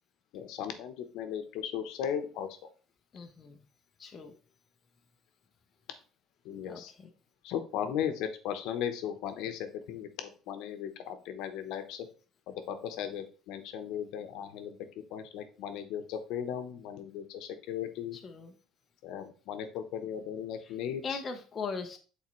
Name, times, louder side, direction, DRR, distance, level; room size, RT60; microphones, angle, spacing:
voice 1, 0.3-2.5 6.4-6.9 7.4-12.1 12.5-14.8 15.1-18.2 19.0-21.2, left 9 dB, 65° left, 8 dB, 0.8 m, -37 dB
voice 2, 3.1-3.6 4.0-4.3 6.7-7.1 18.2-18.5 21.0-22.0, left 5 dB, 20° left, 3 dB, 0.6 m, -39 dB
8.4 x 4.1 x 3.1 m, 0.37 s
cardioid pair, 180°, 0 cm